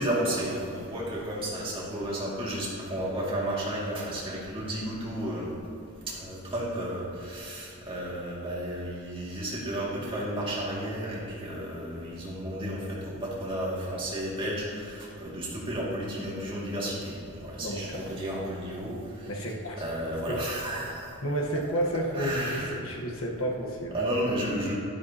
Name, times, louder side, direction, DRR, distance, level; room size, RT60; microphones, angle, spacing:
voice 1, 0.0-5.5 6.1-19.3 19.8-21.1 22.1-22.8 23.9-24.7, right 1 dB, 25° right, -6 dB, 2.2 m, -32 dB
voice 2, 17.6-18.0 19.3-19.8 20.3-20.4 21.2-24.0, equal, 65° left, 0 dB, 1.3 m, -31 dB
11.5 x 11.0 x 2.9 m, 2.8 s
head